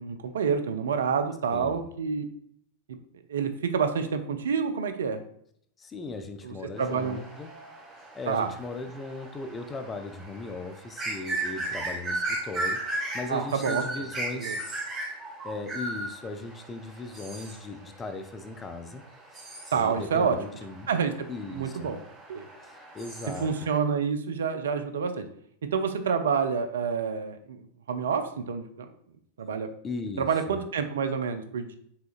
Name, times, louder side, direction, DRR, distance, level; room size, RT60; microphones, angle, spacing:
voice 1, 0.0-2.3 2.9-3.0 3.3-5.2 6.4-7.2 8.3-8.5 13.3-14.1 14.3-14.6 19.7-20.4 20.9-22.0 22.3-22.5 23.4-25.3 25.7-28.9 29.4-29.7 30.2-31.8, right 6 dB, 65° right, 8 dB, 0.4 m, -28 dB
voice 2, 1.5-1.9 5.8-7.5 8.1-14.6 15.4-19.0 19.7-20.9 21.3-21.9 22.6-23.5 29.8-30.6, left 3 dB, 20° left, 7 dB, 0.5 m, -38 dB
sound 1, 6.8-23.8, right 2 dB, 25° right, 1.8 m, -37 dB
5.6 x 3.8 x 2.4 m, 0.67 s
figure-of-eight pair, 90°, 0 cm